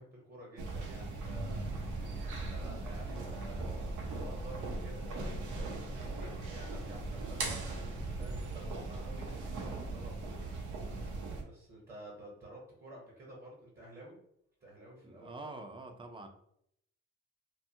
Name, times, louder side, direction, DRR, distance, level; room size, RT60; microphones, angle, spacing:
voice 1, 0.0-1.7 2.5-11.1 11.4-14.1 14.6-15.3, right 1 dB, 35° right, -4 dB, 0.9 m, -52 dB
sound 1, 0.6-11.4, right 2 dB, 90° right, 0.7 m, -39 dB
voice 2, 15.0-16.3, right 2 dB, 15° right, 5 dB, 0.4 m, -46 dB
2.7 x 2.3 x 2.7 m, 0.73 s
cardioid pair, 90°, 30 cm